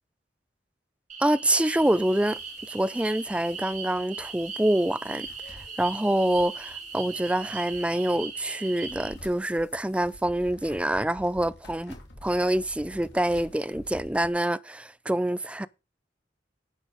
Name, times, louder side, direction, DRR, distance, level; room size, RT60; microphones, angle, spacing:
sound 1, 1.1-9.1, right 5 dB, 45° right, 4.0 m, -39 dB
voice 1, 1.2-2.4 2.7-12.0 12.2-15.7, right 1 dB, 5° right, 0.5 m, -26 dB
sound 2, 1.8-14.3, left 1 dB, 65° left, 3.1 m, -50 dB
10.0 x 8.6 x 5.0 m
head